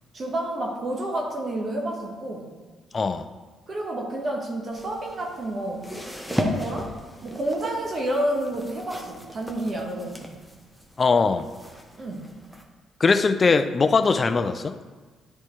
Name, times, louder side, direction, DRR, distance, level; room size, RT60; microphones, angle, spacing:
voice 1, 0.1-2.5 3.7-6.0 6.3-6.9 7.2-10.4 12.0-12.3, right 1 dB, 45° right, 0 dB, 1.2 m, -29 dB
voice 2, 2.9-3.2 11.0-11.5 13.0-14.8, left 4 dB, 35° left, 10 dB, 0.4 m, -21 dB
sound 1, 4.7-12.6, left 1 dB, ahead, 0.9 m, -36 dB
10.5 x 4.3 x 3.2 m, 1.4 s
cardioid pair, 90°, 0 cm